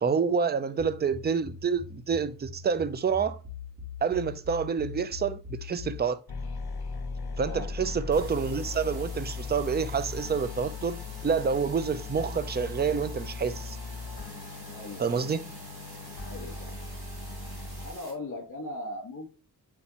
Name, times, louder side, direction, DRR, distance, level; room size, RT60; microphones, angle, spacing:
voice 1, 0.0-3.4 4.0-6.2 7.4-13.8 15.0-15.5, right 6 dB, 25° right, 0.5 m, -28 dB
sound 1, 0.8-6.1, left 5 dB, 65° right, 3.0 m, -42 dB
sound 2, 6.3-17.9, left 4 dB, 75° left, 1.0 m, -38 dB
sound 3, 8.1-18.1, right 3 dB, 80° right, 2.4 m, -49 dB
voice 2, 14.7-15.2 16.2-16.7 17.8-19.3, left 1 dB, 55° left, 2.3 m, -39 dB
8.4 x 4.5 x 2.9 m
wide cardioid pair, 115°, 38 cm